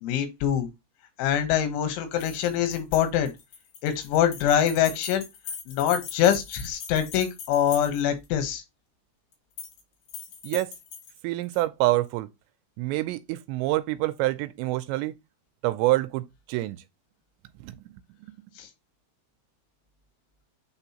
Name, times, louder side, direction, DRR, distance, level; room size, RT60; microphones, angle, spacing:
voice 1, 0.0-0.7 1.2-3.3 3.8-5.3 5.7-8.6 18.6-18.7, left 10 dB, 85° left, 3.6 m, -24 dB
sound 1, 2.1-8.3 9.3-9.8 10.1-11.6, left 6 dB, 60° left, 2.8 m, -41 dB
voice 2, 11.2-12.3 12.8-15.2 15.6-16.8 17.6-17.7, right 18 dB, 85° right, 2.7 m, -26 dB
8.9 x 3.9 x 2.8 m
omnidirectional pair, 5.3 m